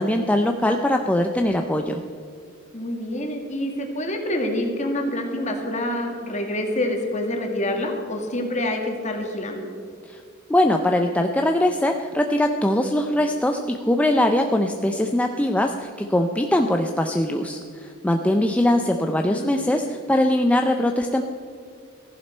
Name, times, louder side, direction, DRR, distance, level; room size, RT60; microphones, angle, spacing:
voice 1, 0.0-2.0 10.1-10.2 10.5-21.2, left 1 dB, 5° left, 4 dB, 0.4 m, -21 dB
voice 2, 2.7-9.7 19.1-19.5, left 1 dB, 35° left, 2 dB, 1.9 m, -27 dB
15.0 x 11.0 x 4.4 m, 2.4 s
head